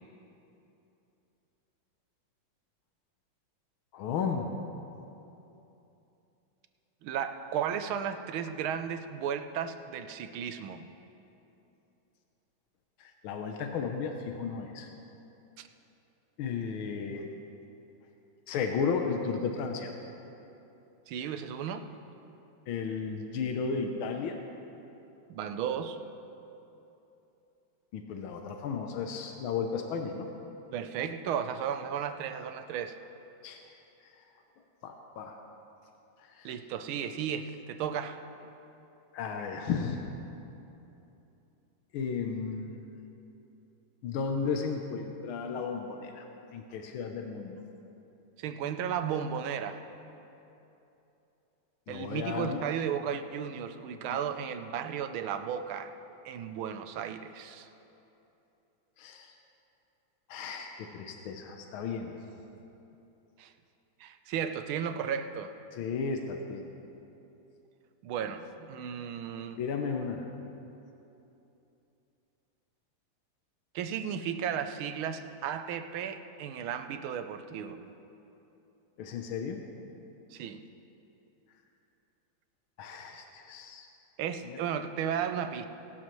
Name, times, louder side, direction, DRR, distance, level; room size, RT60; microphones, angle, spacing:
voice 1, 3.9-4.5 13.0-14.9 16.4-17.4 18.5-19.9 22.7-24.4 27.9-30.3 33.4-33.6 34.8-35.4 36.3-36.5 39.1-40.0 41.9-42.9 44.0-46.2 46.5-47.6 51.9-52.6 59.0-59.3 60.3-62.1 65.7-66.7 69.6-70.2 79.0-79.6 82.8-83.9 84.5-84.6, left 5 dB, 85° left, 4 dB, 1.6 m, -34 dB
voice 2, 7.0-10.9 15.6-15.7 21.1-21.9 25.3-26.0 30.7-33.0 36.4-38.2 48.4-49.8 51.9-55.9 56.2-57.7 63.4-63.5 64.0-65.5 68.0-69.6 73.7-77.8 80.3-80.6 84.2-85.7, right 8 dB, 90° right, 9 dB, 1.5 m, -34 dB
21.5 x 12.0 x 3.1 m, 2.9 s
omnidirectional pair, 2.2 m